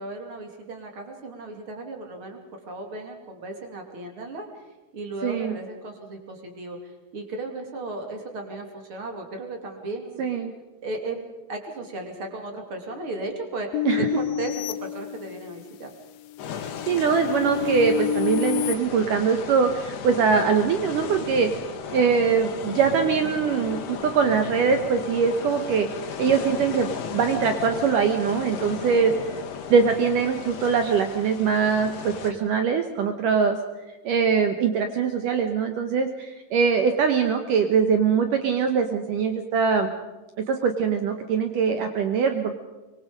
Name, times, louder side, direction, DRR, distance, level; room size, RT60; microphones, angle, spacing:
voice 1, 0.0-2.4 2.7-10.4 10.8-11.2 11.5-13.7 14.0-15.9, right 2 dB, 35° right, 3 dB, 3.1 m, -35 dB
voice 2, 5.2-5.5 10.2-10.5 13.9-14.1 16.9-21.5 21.9-25.9 26.2-29.1 29.7-33.6 34.0-39.9 40.5-42.6, right 6 dB, 80° right, 6 dB, 1.9 m, -22 dB
sound 1, 13.7-15.7 16.2-18.8, left 12 dB, 90° left, 3.4 m, -29 dB
sound 2, 16.4-32.3, left 7 dB, 65° left, 3.6 m, -35 dB
24.5 x 23.0 x 5.2 m, 1.2 s
omnidirectional pair, 5.4 m